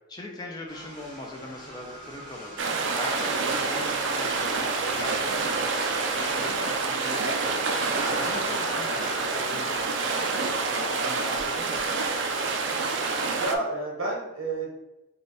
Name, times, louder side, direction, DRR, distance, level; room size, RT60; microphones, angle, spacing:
voice 1, 0.1-2.5 2.9-5.6 6.0-7.7 8.0-10.2 10.6-12.0, left 1 dB, 20° left, 0 dB, 0.5 m, -40 dB
sound 1, 0.7-13.5, equal, 20° right, 1.4 m, -41 dB
sound 2, 2.6-13.6, right 4 dB, 55° right, 0.4 m, -27 dB
voice 2, 13.3-14.7, right 2 dB, 75° right, -1 dB, 1.2 m, -30 dB
3.3 x 2.6 x 4.0 m, 0.96 s
head